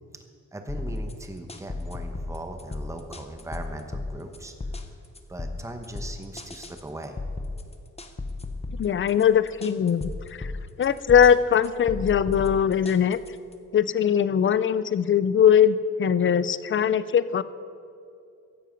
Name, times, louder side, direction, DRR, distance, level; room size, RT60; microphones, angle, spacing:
voice 1, 0.5-4.5 5.3-7.2, right 1 dB, 10° right, 5 dB, 0.9 m, -39 dB
sound 1, 0.7-13.5, left 2 dB, 20° left, 0.8 m, -35 dB
voice 2, 8.8-10.5 10.8-13.2 13.7-17.4, left 8 dB, 40° left, 16 dB, 0.4 m, -21 dB
15.0 x 11.0 x 5.2 m, 2.4 s
wide cardioid pair, 175°, 31 cm